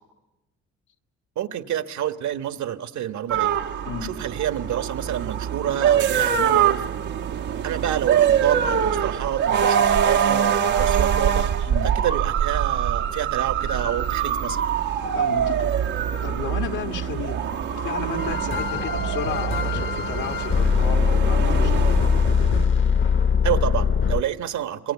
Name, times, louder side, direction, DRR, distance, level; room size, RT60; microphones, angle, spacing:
voice 1, 1.4-3.6 4.0-6.8 7.6-14.6 23.4-24.9, right 10 dB, 70° right, 9 dB, 1.3 m, -28 dB
sound 1, 3.3-22.6, right 8 dB, 90° right, 1.3 m, -24 dB
voice 2, 15.1-15.7 16.0-17.4 17.7-22.1, left 7 dB, 80° left, 3 dB, 1.7 m, -33 dB
sound 2, 18.2-24.2, left 6 dB, 40° left, 0.9 m, -21 dB
27.0 x 23.0 x 8.3 m, 1.0 s
cardioid pair, 90°, 30 cm